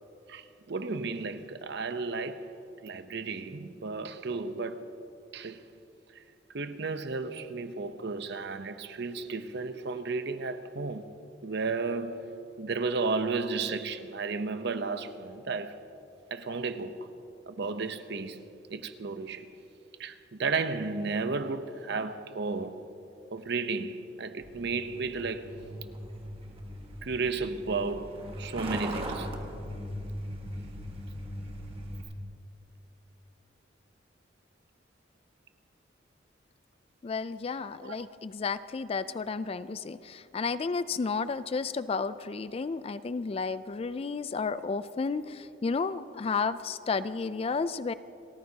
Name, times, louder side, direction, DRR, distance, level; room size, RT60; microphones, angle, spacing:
voice 1, 0.3-2.5 2.8-4.9 5.3-5.6 6.2-6.3 6.5-11.1 11.4-12.3 12.6-15.8 16.3-17.1 17.5-18.4 18.7-19.5 20.0-22.8 23.3-25.5 27.0-29.4 37.8-38.0, right 4 dB, 60° right, 0.7 m, -33 dB
Truck, 24.4-32.0, equal, 30° right, 1.4 m, -39 dB
voice 2, 37.0-47.9, left 4 dB, 30° left, 0.3 m, -32 dB
30.0 x 14.0 x 2.8 m
head